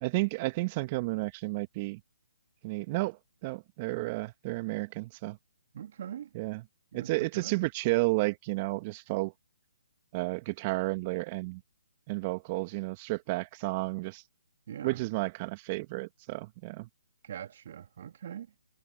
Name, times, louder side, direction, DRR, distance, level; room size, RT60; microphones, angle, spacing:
voice 1, 0.0-2.0 2.6-5.4 6.3-6.6 6.9-9.3 10.1-11.6 12.1-14.2 14.8-16.9, right 23 dB, 30° right, 1.5 m, -32 dB
voice 2, 5.7-6.3 6.9-7.6 14.7-15.0 17.2-18.5, right 9 dB, 50° right, 1.9 m, -42 dB
figure-of-eight pair, 140°, 0 cm